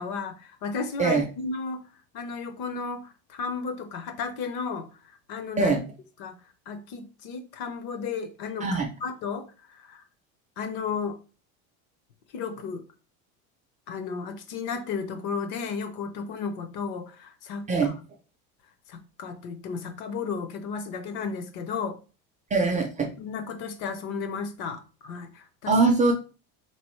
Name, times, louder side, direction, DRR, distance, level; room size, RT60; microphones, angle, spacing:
voice 1, 0.0-1.8 2.1-4.9 5.3-5.8 6.2-6.4 6.7-10.0 10.6-11.2 12.3-12.8 13.9-17.9 18.9-22.0 23.2-25.8, left 5 dB, 55° left, 0.9 m, -34 dB
voice 2, 22.5-23.1 25.7-26.1, right 4 dB, 20° right, 0.4 m, -22 dB
3.9 x 3.0 x 3.1 m
supercardioid pair, 130°, 43 cm